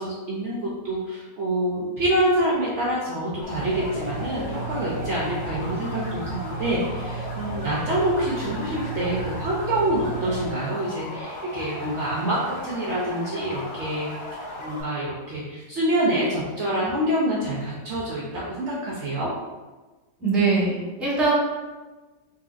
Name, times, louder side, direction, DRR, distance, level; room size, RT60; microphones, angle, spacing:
voice 1, 0.0-14.1 14.6-19.3, right 1 dB, 80° right, -6 dB, 0.6 m, -26 dB
sound 1, 3.4-14.8, left 1 dB, 85° left, 1.5 m, -36 dB
sound 2, 3.5-10.5, right 4 dB, 20° right, 0.3 m, -34 dB
voice 2, 20.2-21.3, right 3 dB, ahead, -8 dB, 0.8 m, -22 dB
3.8 x 2.8 x 2.5 m, 1.2 s
omnidirectional pair, 1.9 m